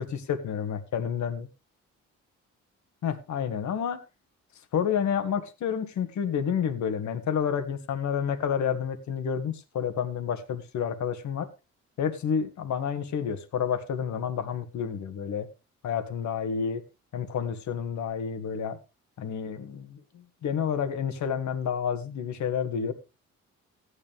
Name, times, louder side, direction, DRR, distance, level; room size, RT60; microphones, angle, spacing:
voice 1, 0.0-1.5 3.0-4.0 4.7-11.5 12.0-15.5 15.8-16.8 17.1-18.8 19.2-22.9, left 7 dB, 70° left, 1.8 m, -29 dB
14.5 x 9.9 x 3.5 m
cardioid pair, 90°, 30 cm